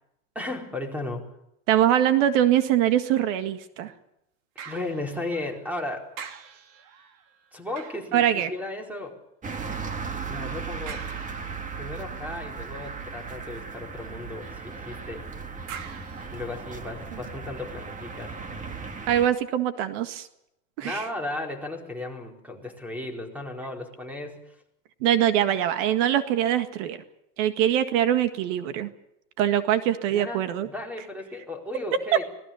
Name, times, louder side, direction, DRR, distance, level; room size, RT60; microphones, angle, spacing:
voice 1, 0.3-1.3 4.7-6.1 7.5-9.2 10.3-11.1 11.8-15.3 16.3-18.4 20.8-24.6 30.1-32.3, left 2 dB, 5° right, 3 dB, 4.3 m, -35 dB
voice 2, 1.7-3.9 8.1-8.5 19.1-20.3 20.8-21.0 25.0-27.0 27.4-28.9 29.4-30.7, right 11 dB, 75° right, 9 dB, 1.9 m, -23 dB
sound 1, 4.6-5.8 6.1-9.0 10.9-11.8 15.7-17.1 17.7-17.8, right 7 dB, 60° right, 3.0 m, -45 dB
sound 2, 9.4-19.3, right 5 dB, 20° right, 1.8 m, -36 dB
26.0 x 18.5 x 7.1 m, 0.81 s
supercardioid pair, 145°, 37 cm